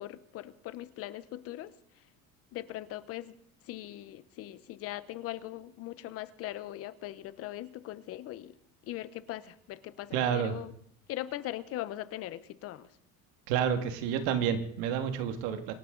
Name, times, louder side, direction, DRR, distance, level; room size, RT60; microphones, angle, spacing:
voice 1, 0.0-1.7 2.5-3.4 3.6-8.5 8.8-10.7 11.1-12.9, left 14 dB, 45° left, 15 dB, 0.9 m, -40 dB
voice 2, 10.1-10.6 13.5-15.7, right 8 dB, 85° right, 7 dB, 2.1 m, -29 dB
25.5 x 12.0 x 3.9 m, 0.65 s
cardioid pair, 165°, 33 cm